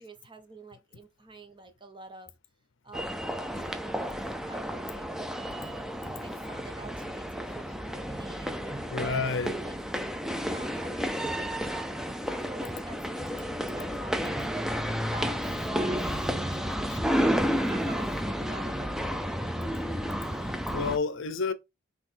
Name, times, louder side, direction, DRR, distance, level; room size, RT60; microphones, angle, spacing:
voice 1, 0.0-2.3 2.8-5.8 6.2-9.8 10.4-16.6 17.1-17.3 17.7-19.3 19.9-20.0, right 2 dB, 25° right, 1.0 m, -47 dB
sound 1, 2.9-21.0, equal, ahead, 0.5 m, -31 dB
voice 2, 8.9-9.5 16.9-17.0 20.3-21.5, left 4 dB, 60° left, 0.7 m, -30 dB
6.1 x 3.5 x 4.4 m
head